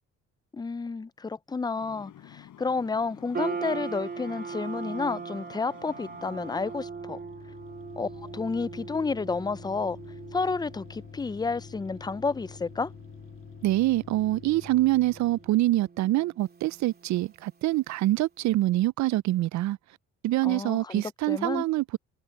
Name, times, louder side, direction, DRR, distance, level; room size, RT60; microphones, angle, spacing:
voice 1, 0.5-7.2 8.0-10.0 10.3-12.9 20.4-21.0 21.3-21.7, left 4 dB, 15° left, 0.4 m, -31 dB
sound 1, 1.8-6.8, left 11 dB, 75° left, 5.3 m, -51 dB
sound 2, 3.3-17.8, right 5 dB, 30° right, 2.7 m, -41 dB
sound 3, 5.8-15.6, left 6 dB, 45° left, 2.2 m, -47 dB
voice 2, 13.6-19.8 20.2-22.0, right 16 dB, 65° right, 0.4 m, -25 dB
cardioid pair, 90°, 30 cm